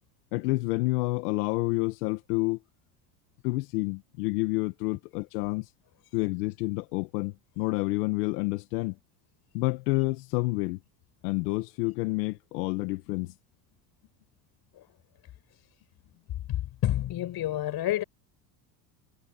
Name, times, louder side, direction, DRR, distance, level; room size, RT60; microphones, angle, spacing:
voice 1, 0.3-2.6 3.4-5.7 6.1-8.9 9.5-10.8 11.2-13.3, left 23 dB, 80° left, 1.5 m, -29 dB
voice 2, 16.5-18.0, left 13 dB, 50° left, 5.7 m, -29 dB
supercardioid pair, 95°, 47 cm